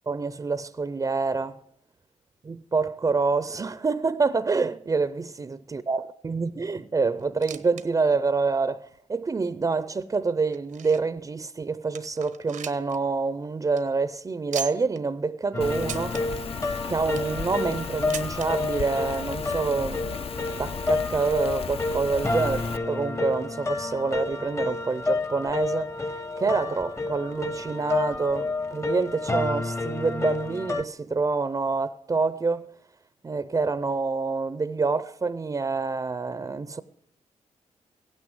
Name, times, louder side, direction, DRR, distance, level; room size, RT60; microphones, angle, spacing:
voice 1, 0.1-1.6 2.4-16.4 16.9-20.1 20.6-32.7 33.2-36.8, right 4 dB, 25° right, 0.5 m, -27 dB
sound 1, 7.2-7.9 8.1-8.2 8.9-9.0 9.7-11.2 11.6-11.7 11.9-13.0 13.3-13.4 13.6-13.8 14.5-15.0 15.8-16.2 16.8-17.4 18.1-18.5 19.4-19.5 19.7-19.8 20.7-20.8, right 8 dB, 90° right, 1.1 m, -38 dB
sound 2, 15.5-30.8, left 3 dB, 20° left, 0.8 m, -30 dB
Rain, 15.6-22.8, left 6 dB, 50° left, 0.5 m, -36 dB
16.5 x 9.7 x 7.9 m
cardioid pair, 95°, 13 cm